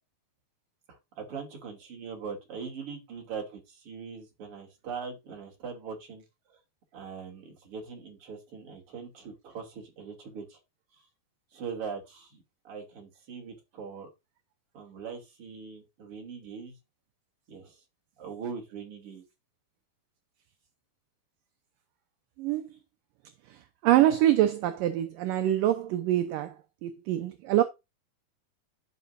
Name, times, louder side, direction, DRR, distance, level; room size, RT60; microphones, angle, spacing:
voice 1, 0.9-6.6 6.9-10.6 10.9-11.0 11.5-14.1 14.7-16.8 17.5-17.8 18.2-19.2, right 6 dB, 40° right, 3.1 m, -41 dB
voice 2, 23.8-26.5 26.8-27.6, right 13 dB, 75° right, 2.2 m, -24 dB
13.5 x 5.7 x 2.6 m
omnidirectional pair, 4.5 m